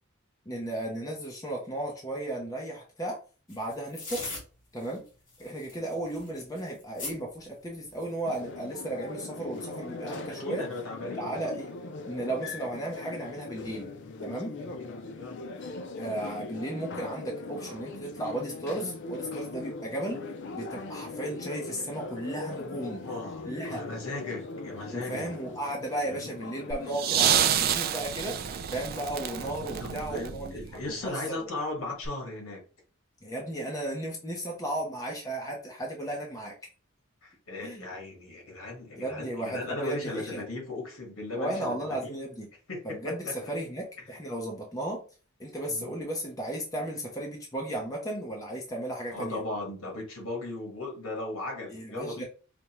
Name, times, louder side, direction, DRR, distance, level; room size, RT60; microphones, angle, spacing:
voice 1, 0.5-3.2 3.5-4.3 4.7-5.0 5.4-10.6 11.2-11.7 12.1-13.9 14.2-14.6 16.0-20.2 20.5-23.0 23.5-23.8 24.9-28.4 28.7-30.6 30.9-31.5 33.2-36.5 37.6-37.9 39.0-40.4 41.3-42.5 42.8-45.0 45.4-49.4 51.7-52.2, right 1 dB, 15° left, 0 dB, 0.7 m, -35 dB
sound 1, 3.5-4.4 4.8-5.0 5.3-7.1 7.9-8.4, left 3 dB, 40° left, 1.9 m, -39 dB
sound 2, 8.2-27.5, left 3 dB, 55° left, 0.4 m, -40 dB
voice 2, 10.3-11.5 14.5-14.9 15.1-15.4 22.8-25.3 26.0-26.3 29.8-32.6 37.2-41.7 42.0-42.2 42.7-43.3 45.7-45.9 49.1-52.2, left 2 dB, 70° left, 1 dB, 1.5 m, -37 dB
sound 3, 26.7-30.9 32.0-32.1, right 9 dB, 45° right, 0.3 m, -28 dB
5.0 x 2.2 x 3.0 m, 0.37 s
head